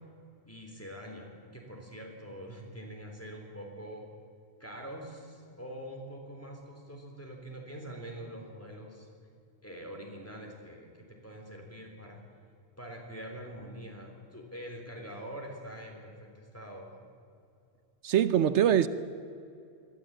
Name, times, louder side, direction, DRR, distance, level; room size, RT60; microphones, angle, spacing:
voice 1, 0.5-4.1 4.6-9.1 9.6-12.2 12.8-17.0, equal, 10° left, 3.7 m, -44 dB
voice 2, 18.0-18.9, right 10 dB, 85° right, 1.0 m, -23 dB
21.5 x 13.5 x 9.0 m
omnidirectional pair, 1.2 m